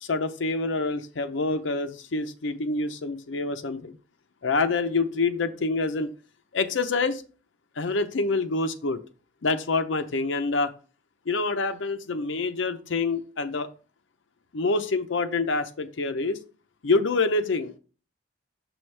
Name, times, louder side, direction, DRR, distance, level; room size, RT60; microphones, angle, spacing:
voice 1, 0.0-4.0 4.4-6.1 6.5-7.2 7.8-9.0 9.4-10.7 11.3-13.7 14.5-16.4 16.8-17.8, left 3 dB, 75° left, 7 dB, 0.6 m, -26 dB
6.3 x 6.2 x 3.3 m, 0.36 s
head